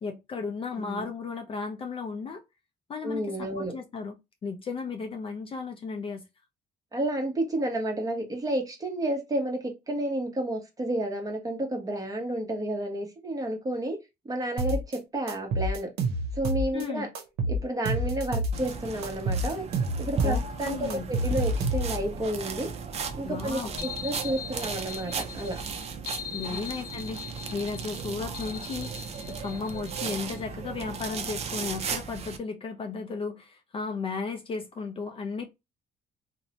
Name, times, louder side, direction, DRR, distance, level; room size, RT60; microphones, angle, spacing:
voice 1, 0.0-2.4 2.9-4.1 4.4-6.2 16.7-17.1 20.2-21.0 23.2-23.8 26.3-29.1 29.4-35.5, left 4 dB, 35° left, 0.4 m, -35 dB
voice 2, 0.8-1.1 3.0-3.7 6.9-9.6 9.9-14.0 14.2-15.9 16.3-17.1 17.5-19.7 20.0-22.7 23.1-25.6 26.5-26.6, right 1 dB, 20° right, 1.0 m, -31 dB
sound 1, 14.6-15.0 15.3-16.8 17.1-18.7 19.0-22.1, right 1 dB, 75° right, 0.7 m, -28 dB
sound 2, 18.5-32.4, right 5 dB, 40° right, 0.5 m, -36 dB
sound 3, 23.8-30.4, left 7 dB, 70° left, 0.7 m, -41 dB
2.6 x 2.1 x 2.8 m
cardioid pair, 110°, 17 cm